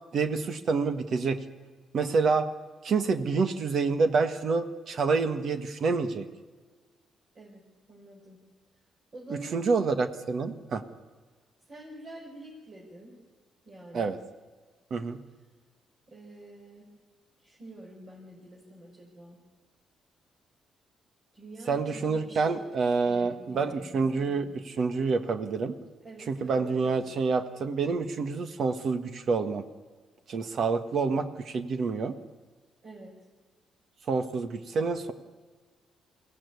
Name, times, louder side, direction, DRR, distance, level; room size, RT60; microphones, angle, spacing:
voice 1, 0.1-1.4 1.9-2.5 2.8-6.2 9.5-10.8 13.9-14.2 14.9-15.2 21.7-25.8 26.3-29.6 30.3-32.2 34.1-35.1, right 4 dB, 60° right, 9 dB, 1.6 m, -27 dB
voice 2, 7.9-8.4 9.1-9.7 11.7-13.1 13.6-14.2 16.1-16.9 17.4-19.4 21.3-22.6 23.0-24.5 26.0-27.1 32.8-33.1, right 1 dB, 40° right, -3 dB, 5.6 m, -47 dB
22.5 x 16.5 x 9.6 m, 1.4 s
cardioid pair, 90°, 0 cm